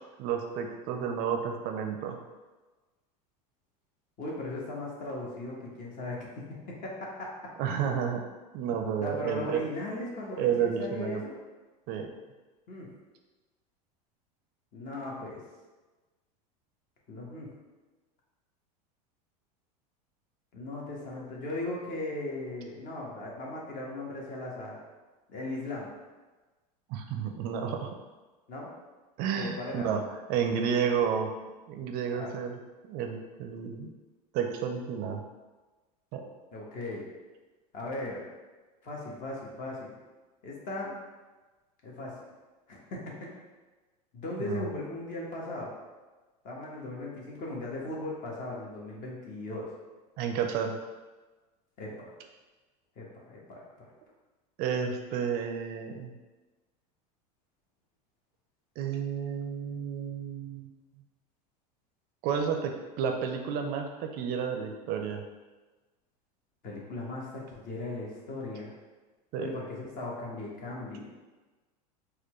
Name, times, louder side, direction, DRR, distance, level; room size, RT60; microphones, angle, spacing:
voice 1, 0.2-2.2 7.6-8.2 8.5-9.6 10.4-11.2 11.9-12.1 26.9-27.9 29.2-30.0 30.3-31.3 31.7-32.6 32.9-33.9 34.3-35.2 36.1-36.3 44.4-44.6 50.2-50.8 54.6-56.1 58.8-60.7 62.2-65.2 69.3-69.5, right 7 dB, 50° right, 4 dB, 0.4 m, -31 dB
voice 2, 4.2-7.3 9.0-11.3 12.7-12.9 14.7-15.4 17.1-17.5 20.5-24.8 25.3-25.9 28.5-28.7 29.4-29.9 32.1-32.3 36.5-37.0 37.7-38.2 38.8-40.0 40.4-40.9 41.8-42.1 42.7-43.2 44.1-45.7 46.4-49.6 51.8-51.9 53.0-53.9 66.6-68.7 69.4-71.0, left 2 dB, 45° left, -3 dB, 1.1 m, -38 dB
4.2 x 2.3 x 3.0 m, 1.2 s
hypercardioid pair, 105°, 20 cm